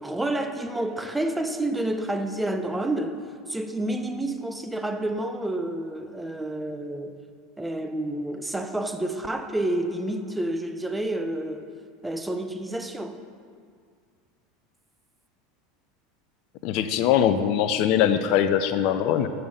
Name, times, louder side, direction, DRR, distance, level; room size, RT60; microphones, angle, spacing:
voice 1, 0.0-3.2 3.5-7.1 7.6-11.7 12.0-13.2, right 1 dB, 10° right, 7 dB, 0.5 m, -29 dB
voice 2, 16.6-19.3, left 9 dB, 55° left, 10 dB, 0.4 m, -22 dB
6.8 x 5.6 x 5.0 m, 2.1 s
hypercardioid pair, 80°, 0 cm